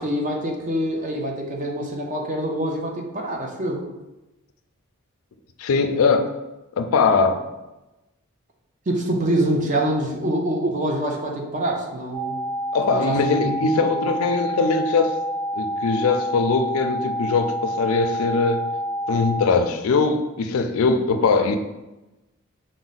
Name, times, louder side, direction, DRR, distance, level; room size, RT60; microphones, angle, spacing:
voice 1, 0.0-3.8 8.9-12.4 12.9-13.9, right 1 dB, 35° right, 1 dB, 0.6 m, -25 dB
voice 2, 5.6-6.3 6.8-7.4 12.7-15.2 15.6-18.6 19.1-21.6, left 4 dB, 75° left, 6 dB, 0.4 m, -21 dB
sound 1, 12.1-19.4, equal, 20° left, 0.5 m, -28 dB
4.8 x 2.1 x 4.0 m, 1.0 s
head